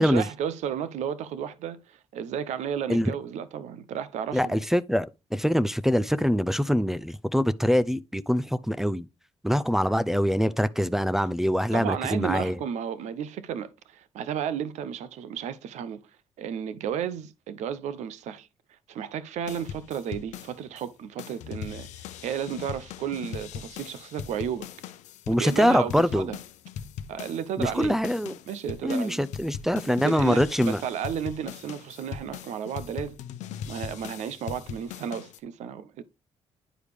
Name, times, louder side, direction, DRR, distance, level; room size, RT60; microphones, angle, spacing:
voice 1, 0.0-4.6 11.7-16.0 16.4-18.5 18.9-24.7 25.3-26.4 27.1-27.9 28.5-29.2 29.9-33.2 33.7-36.0, right 8 dB, 80° right, 0.6 m, -33 dB
voice 2, 4.3-9.1 9.4-12.6 25.3-26.3 27.6-28.3 28.8-30.8, equal, 5° right, 0.5 m, -24 dB
sound 1, 19.5-20.9 21.2-35.4, left 9 dB, 85° left, 0.7 m, -40 dB
10.0 x 4.8 x 3.4 m
cardioid pair, 80°, 12 cm